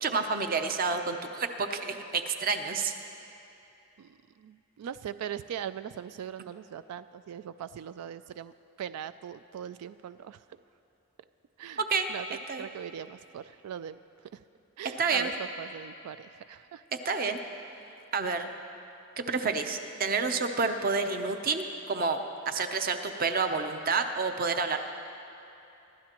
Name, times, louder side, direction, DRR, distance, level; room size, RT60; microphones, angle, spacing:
voice 1, 0.0-2.9 11.8-12.1 12.5-12.7 15.0-15.3 17.0-17.4 18.1-18.5 19.2-22.2 22.5-24.9, right 4 dB, 40° right, 7 dB, 0.7 m, -29 dB
voice 2, 4.0-8.5 8.8-10.4 11.6-11.8 12.1-14.0 14.3-14.4 14.8-16.8, right 9 dB, 90° right, 15 dB, 0.3 m, -40 dB
25.0 x 12.5 x 3.0 m, 2.9 s
head